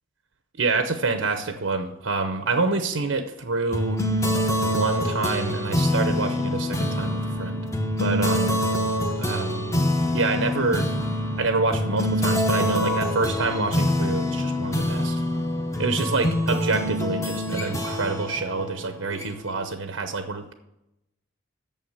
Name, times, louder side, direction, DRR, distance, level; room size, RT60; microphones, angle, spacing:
voice 1, 0.6-4.0 4.6-7.7 8.0-8.6 9.2-9.7 10.1-10.9 11.4-15.2 15.8-20.5, right 3 dB, 85° right, 7 dB, 0.8 m, -27 dB
sound 1, 3.7-19.6, left 1 dB, 15° left, 0.9 m, -25 dB
8.9 x 7.0 x 8.0 m, 0.90 s
head